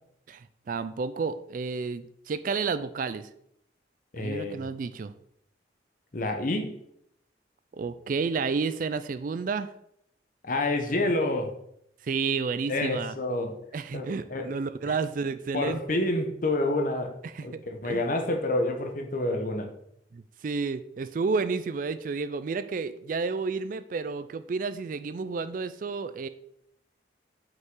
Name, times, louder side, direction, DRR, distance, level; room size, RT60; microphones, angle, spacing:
voice 1, 0.3-3.3 4.2-5.1 7.7-9.7 12.0-13.1 13.7-16.0 17.2-18.1 20.1-26.3, right 4 dB, 45° right, 13 dB, 0.3 m, -31 dB
voice 2, 4.1-4.7 6.1-6.8 10.4-11.5 12.7-13.6 13.9-14.5 14.9-15.0 15.5-19.7, left 2 dB, 45° left, 4 dB, 0.9 m, -28 dB
5.9 x 5.4 x 3.7 m, 0.73 s
head